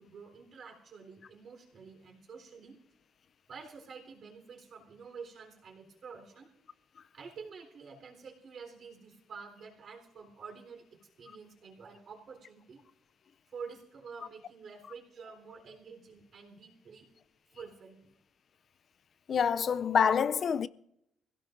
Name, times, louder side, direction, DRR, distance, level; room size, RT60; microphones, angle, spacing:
voice 1, 0.0-2.8 3.5-6.5 7.1-10.9 11.2-12.8 13.5-17.1 17.5-18.1, right 5 dB, 60° right, 3.9 m, -48 dB
voice 2, 19.3-20.7, left 7 dB, 55° left, 0.5 m, -26 dB
23.5 x 16.5 x 2.6 m
cardioid pair, 90°, 0 cm